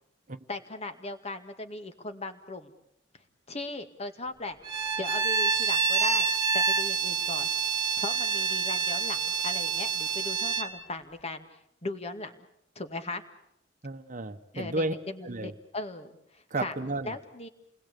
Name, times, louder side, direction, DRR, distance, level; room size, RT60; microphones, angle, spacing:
voice 1, 0.5-2.7 3.5-4.6 5.0-6.3 6.5-7.5 8.0-11.4 11.8-12.5 12.8-13.2 14.5-16.7 17.0-17.5, left 2 dB, 35° left, 8 dB, 2.1 m, -38 dB
Bowed string instrument, 4.6-10.7, right 5 dB, 20° right, 2.2 m, -27 dB
voice 2, 13.8-14.9 15.2-15.5 16.5-17.1, right 2 dB, 45° right, 10 dB, 1.2 m, -32 dB
29.0 x 20.5 x 8.4 m, 0.75 s
head